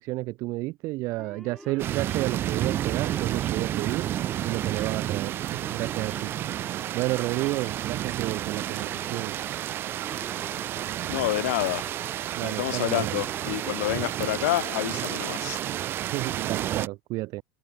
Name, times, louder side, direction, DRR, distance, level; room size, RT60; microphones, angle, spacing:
voice 1, 0.0-4.1 4.5-5.4 5.7-6.3 6.6-9.4 12.4-13.3 13.9-14.1 16.1-17.4, right 20 dB, 45° right, 1.7 m, -31 dB
Male speech man speaking / Siren, 1.2-15.9, equal, ahead, 1.2 m, -50 dB
sound 1, 1.8-16.9, right 12 dB, 30° right, 0.7 m, -31 dB
voice 2, 11.1-11.8 12.4-15.6, left 18 dB, 85° left, 1.3 m, -28 dB
open air
supercardioid pair, 160°, 7 cm